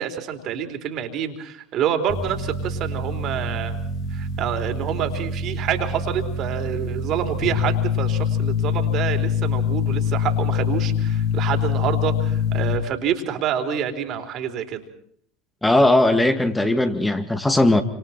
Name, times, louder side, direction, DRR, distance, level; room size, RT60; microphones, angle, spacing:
voice 1, 0.0-3.8 4.1-14.8, right 8 dB, 45° right, 6 dB, 3.9 m, -27 dB
sound 1, 2.1-12.8, left 5 dB, 50° left, 5.6 m, -25 dB
voice 2, 15.6-17.8, left 1 dB, 10° left, 7 dB, 2.1 m, -18 dB
29.5 x 26.5 x 4.4 m, 0.62 s
figure-of-eight pair, 75°, 0 cm